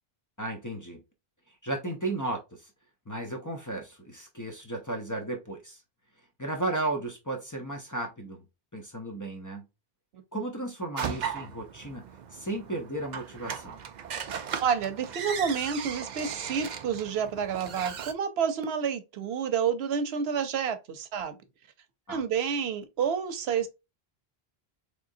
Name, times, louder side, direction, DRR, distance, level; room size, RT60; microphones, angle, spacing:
voice 1, 0.4-1.0 1.6-2.7 3.1-5.8 6.4-8.4 8.7-9.6 10.3-12.0 12.3-13.8 22.1-22.2, right 2 dB, 20° left, 0.6 m, -34 dB
sound 1, 11.0-18.1, right 7 dB, 55° right, 0.5 m, -37 dB
voice 2, 14.6-21.4 22.1-23.7, right 7 dB, 85° right, 0.9 m, -29 dB
3.7 x 3.3 x 2.6 m
omnidirectional pair, 1.0 m